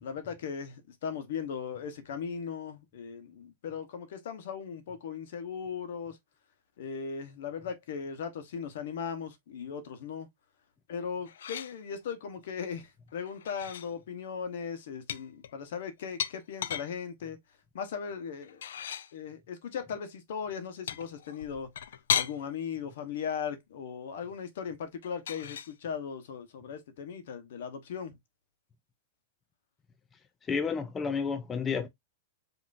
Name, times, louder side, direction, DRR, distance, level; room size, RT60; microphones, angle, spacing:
voice 1, 0.0-6.2 6.8-10.3 10.9-17.4 17.7-18.6 19.1-21.7 22.1-28.2, left 6 dB, 65° left, 1.1 m, -38 dB
sound 1, 11.3-11.8 13.3-13.9 15.1-16.9 18.4-19.1 20.9-22.4 25.0-25.7, left 9 dB, 85° left, 0.4 m, -35 dB
voice 2, 30.4-31.9, left 5 dB, 15° left, 0.4 m, -31 dB
5.4 x 2.9 x 2.6 m
supercardioid pair, 155°, 0 cm